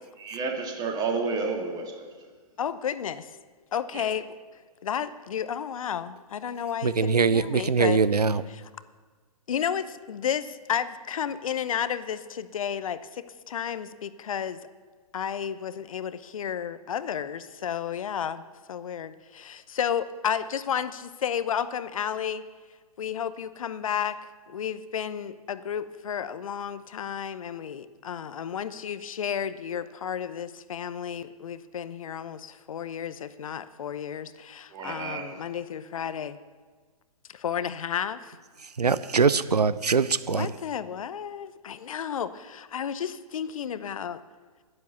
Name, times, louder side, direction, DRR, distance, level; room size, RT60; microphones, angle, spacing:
voice 1, 0.2-2.1 3.9-4.1 34.7-35.3, right 4 dB, 20° right, 2 dB, 2.1 m, -31 dB
voice 2, 2.6-3.3 3.7-4.3 4.8-8.0 8.5-8.6 9.5-14.6 15.1-18.4 18.7-22.4 23.0-24.2 24.5-36.4 37.3-38.4 40.3-44.2, left 8 dB, 60° left, 14 dB, 0.8 m, -32 dB
voice 3, 6.8-8.4 38.8-40.5, right 5 dB, 85° right, 16 dB, 0.5 m, -22 dB
11.0 x 10.5 x 7.0 m, 1.4 s
figure-of-eight pair, 115°, 20 cm